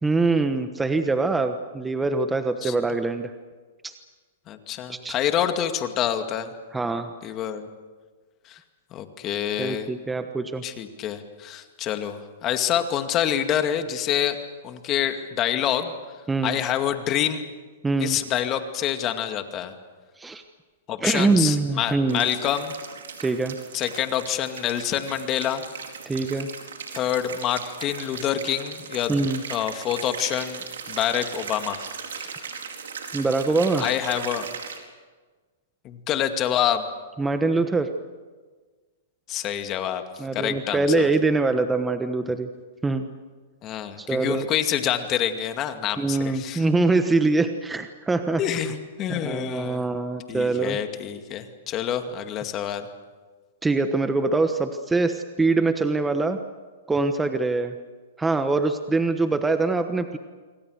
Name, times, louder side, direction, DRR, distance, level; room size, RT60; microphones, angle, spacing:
voice 1, 0.0-3.3 3.8-3.9 4.9-5.2 6.7-7.1 9.6-10.6 16.3-16.6 17.8-18.2 20.2-20.4 21.0-22.3 23.2-23.5 26.1-26.5 29.1-29.4 32.2-32.3 33.1-33.8 37.2-37.9 40.2-42.5 42.8-43.1 44.0-44.4 46.0-48.6 49.1-50.8 53.6-56.4 56.9-57.7 58.2-60.2, right 3 dB, 10° right, 8 dB, 1.1 m, -24 dB
voice 2, 4.5-6.5 7.2-7.7 8.5-8.6 8.9-9.9 10.6-14.4 14.6-15.9 16.4-17.5 18.0-19.7 20.9-22.7 23.7-25.6 26.9-29.1 29.5-30.6 30.9-31.9 33.8-34.5 35.8-36.9 39.3-40.0 40.3-41.1 43.6-46.6 48.4-49.9 50.3-52.9, left 10 dB, 30° left, 7 dB, 2.2 m, -27 dB
sound 1, 22.1-34.8, right 6 dB, 85° right, 4.6 m, -38 dB
27.5 x 24.0 x 6.6 m, 1.4 s
hypercardioid pair, 135°, 0 cm